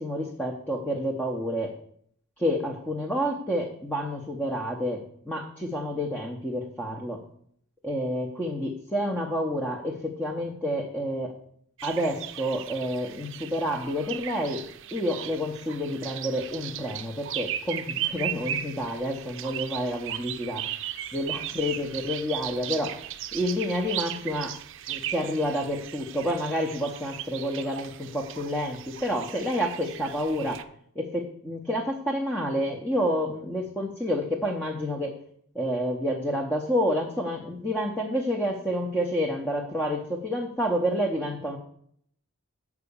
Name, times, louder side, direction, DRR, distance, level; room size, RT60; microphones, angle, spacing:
voice 1, 0.0-1.7 2.4-7.2 7.8-11.3 11.8-14.6 14.9-20.6 21.1-22.9 23.3-24.5 24.9-30.6 31.0-35.1 35.5-41.6, equal, 5° left, 0 dB, 0.8 m, -29 dB
sound 1, 11.8-30.6, right 11 dB, 60° right, 0.5 m, -37 dB
7.5 x 4.8 x 6.9 m, 0.66 s
head